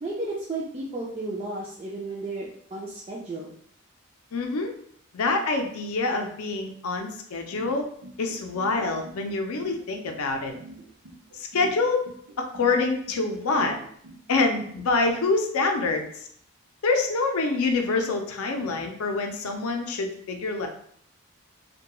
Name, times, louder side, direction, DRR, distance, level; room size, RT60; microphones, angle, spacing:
voice 1, 0.0-3.5, right 2 dB, 25° right, -5 dB, 0.3 m, -33 dB
voice 2, 4.3-4.7 5.1-7.9 8.2-10.5 11.3-12.0 12.4-13.8 14.3-16.3 16.8-20.7, left 3 dB, 80° left, 4 dB, 0.4 m, -26 dB
sound 1, 7.5-15.1, right 2 dB, 90° right, 0.6 m, -44 dB
2.2 x 2.2 x 2.9 m, 0.63 s
head